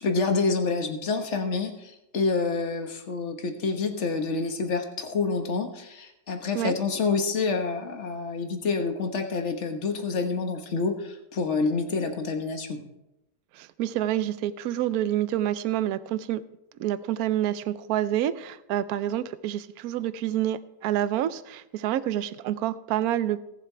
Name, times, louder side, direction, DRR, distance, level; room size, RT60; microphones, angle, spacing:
voice 1, 0.0-12.8, left 4 dB, 45° left, 5 dB, 1.5 m, -28 dB
voice 2, 13.5-16.4 16.8-23.4, right 12 dB, 70° right, 15 dB, 1.0 m, -28 dB
17.5 x 7.5 x 4.5 m, 0.89 s
omnidirectional pair, 1.9 m